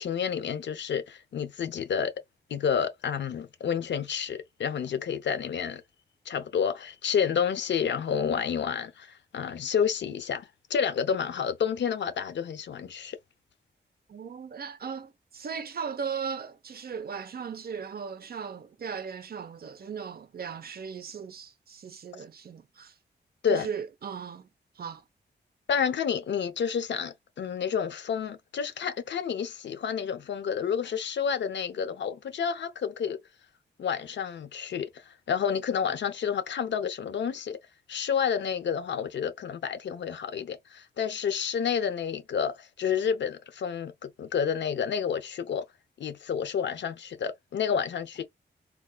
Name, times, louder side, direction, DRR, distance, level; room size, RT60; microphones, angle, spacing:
voice 1, 0.0-2.1 2.5-5.8 6.3-13.2 23.4-23.7 25.7-33.2 33.8-37.6 37.9-45.6 46.0-48.2, left 7 dB, 75° left, 0.6 m, -30 dB
voice 2, 14.1-22.9 23.5-24.5 24.8-25.0, right 6 dB, 55° right, 0.7 m, -37 dB
3.6 x 2.4 x 2.2 m
wide cardioid pair, 100°, 18 cm